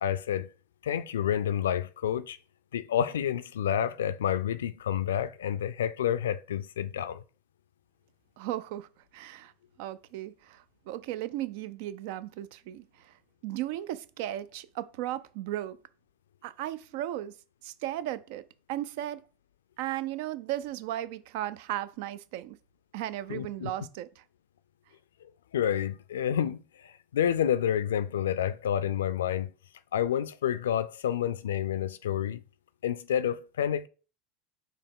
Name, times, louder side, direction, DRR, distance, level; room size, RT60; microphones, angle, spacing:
voice 1, 0.0-0.5 0.8-2.4 2.7-7.2 23.3-23.7 25.5-29.5 29.9-32.4 32.8-33.9, left 9 dB, 85° left, 0.3 m, -29 dB
voice 2, 8.4-8.9 9.1-9.5 9.8-13.1 13.4-15.8 16.4-17.3 17.6-18.4 18.7-19.2 19.8-22.6 22.9-24.1, right 13 dB, 70° right, 0.3 m, -35 dB
4.6 x 2.9 x 3.6 m
hypercardioid pair, 90°, 0 cm